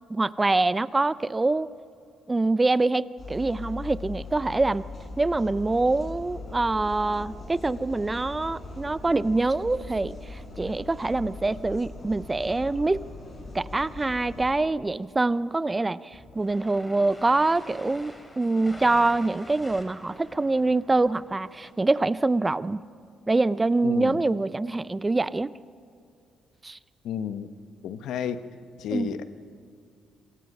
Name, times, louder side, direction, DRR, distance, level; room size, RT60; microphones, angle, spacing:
voice 1, 0.1-1.7 2.3-4.8 5.2-13.0 13.5-22.8 23.3-25.5 26.6-26.8 28.9-29.1, right 2 dB, 20° right, 17 dB, 0.5 m, -25 dB
sound 1, 3.2-14.5, left 3 dB, 45° left, 7.2 m, -40 dB
sound 2, 16.1-21.7, left 1 dB, 15° left, 3.6 m, -46 dB
voice 2, 23.8-24.2 27.0-27.5 27.8-28.4 28.8-29.2, left 8 dB, 80° left, 11 dB, 1.0 m, -31 dB
27.0 x 22.0 x 5.4 m, 2.3 s
cardioid pair, 90°, 0 cm